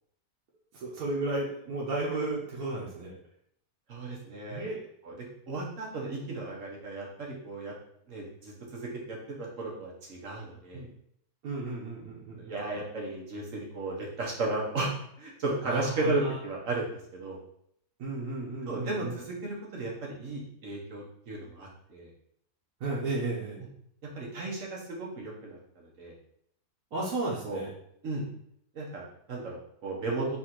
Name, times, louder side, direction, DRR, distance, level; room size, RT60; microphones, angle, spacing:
voice 1, 0.7-3.1 4.5-4.8 10.7-10.9 11.4-12.8 15.6-16.4 18.0-19.1 22.8-23.6 26.9-27.7, right 2 dB, 85° right, -5 dB, 1.4 m, -33 dB
voice 2, 3.9-4.7 5.0-7.7 8.1-10.8 12.4-14.9 15.2-17.4 18.7-22.1 24.2-26.1 27.4-27.6 28.0-28.3 28.7-30.3, right 2 dB, 60° right, -2 dB, 1.4 m, -35 dB
4.1 x 2.6 x 4.3 m, 0.70 s
omnidirectional pair, 1.5 m